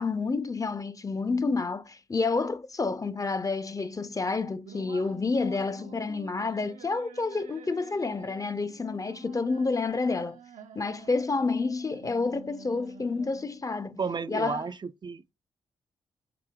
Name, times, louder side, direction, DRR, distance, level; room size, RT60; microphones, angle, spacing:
voice 1, 0.0-10.4 10.8-14.0 14.3-14.6, left 4 dB, 25° left, 0.5 m, -29 dB
sound 1, 4.6-13.6, right 6 dB, 75° right, 0.7 m, -49 dB
voice 2, 13.9-15.3, right 5 dB, 35° right, 0.4 m, -33 dB
6.0 x 2.7 x 2.2 m
supercardioid pair, 50°, 13 cm